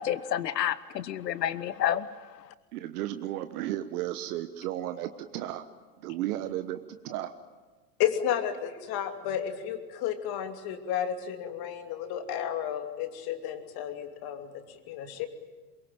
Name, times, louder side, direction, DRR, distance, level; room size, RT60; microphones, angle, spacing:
voice 1, 0.0-2.1, left 11 dB, 90° left, 17 dB, 1.1 m, -29 dB
voice 2, 2.7-5.6 6.0-7.3, right 13 dB, 70° right, 9 dB, 1.3 m, -34 dB
voice 3, 8.0-15.3, left 10 dB, 50° left, 6 dB, 2.9 m, -32 dB
23.0 x 22.5 x 9.2 m, 1.3 s
hypercardioid pair, 105°, 48 cm